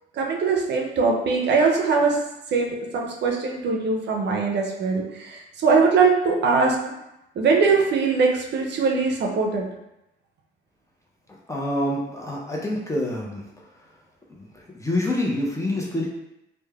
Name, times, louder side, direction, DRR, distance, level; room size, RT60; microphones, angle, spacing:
voice 1, 0.1-2.2 2.5-6.8 7.4-9.7, right 4 dB, 60° right, 0 dB, 0.5 m, -21 dB
voice 2, 11.5-13.4 14.8-16.1, left 1 dB, 15° left, -2 dB, 0.6 m, -26 dB
3.0 x 2.1 x 2.3 m, 0.88 s
cardioid pair, 90°, 20 cm